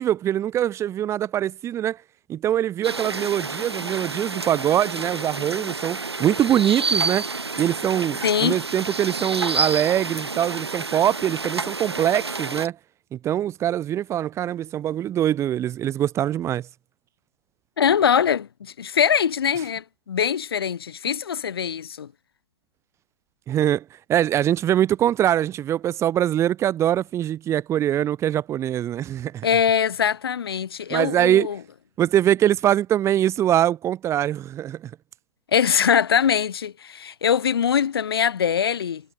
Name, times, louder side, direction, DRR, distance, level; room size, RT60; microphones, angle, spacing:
voice 1, 0.0-2.0 2.3-7.3 7.6-12.8 13.1-16.7 23.5-23.8 24.1-29.5 30.9-31.5 32.0-34.9, right 11 dB, 20° right, 3.0 m, -23 dB
sound 1, 2.8-12.7, right 3 dB, 90° right, 6.4 m, -29 dB
voice 2, 8.2-8.6 17.8-22.1 29.4-31.6 35.5-39.0, left 8 dB, 65° left, 5.2 m, -22 dB
hypercardioid pair, 125°, 13 cm